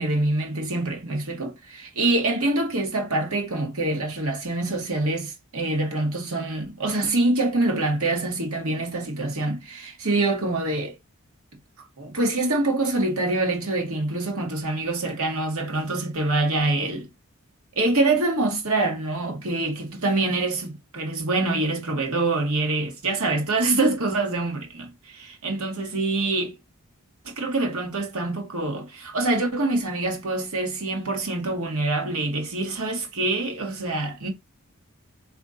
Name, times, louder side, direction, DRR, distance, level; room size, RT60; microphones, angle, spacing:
voice 1, 0.0-11.0 12.0-17.1 17.7-26.5 27.2-34.3, right 2 dB, 85° right, 1.7 m, -25 dB
3.8 x 3.3 x 4.0 m
head